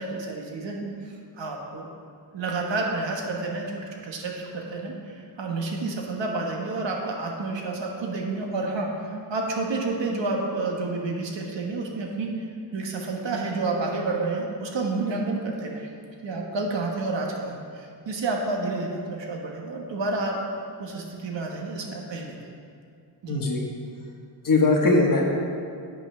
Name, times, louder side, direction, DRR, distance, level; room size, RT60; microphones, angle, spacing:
voice 1, 0.0-1.9 2.3-12.4 12.7-15.9 16.2-20.4 20.8-22.4 23.2-23.4, right 3 dB, 70° right, 0 dB, 1.4 m, -30 dB
voice 2, 23.3-23.6 24.4-25.2, left 3 dB, 45° left, 0 dB, 1.3 m, -20 dB
8.3 x 5.9 x 5.5 m, 2.3 s
wide cardioid pair, 145°, 45 cm